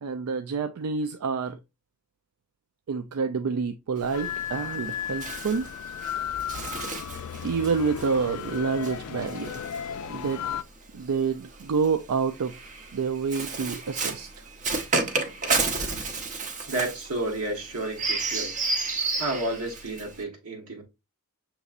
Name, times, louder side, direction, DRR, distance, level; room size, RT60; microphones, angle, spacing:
voice 1, 0.0-1.6 2.9-5.7 7.4-9.7 10.0-10.5 10.9-14.3, right 5 dB, 85° right, 0.4 m, -28 dB
Bird, 4.0-10.5 11.4-20.2, right 3 dB, 35° right, 0.8 m, -32 dB
sound 1, 4.1-10.6, left 9 dB, 70° left, 0.3 m, -35 dB
voice 2, 16.7-18.5 19.2-20.8, right 1 dB, 70° right, 1.2 m, -31 dB
6.5 x 3.0 x 2.4 m
head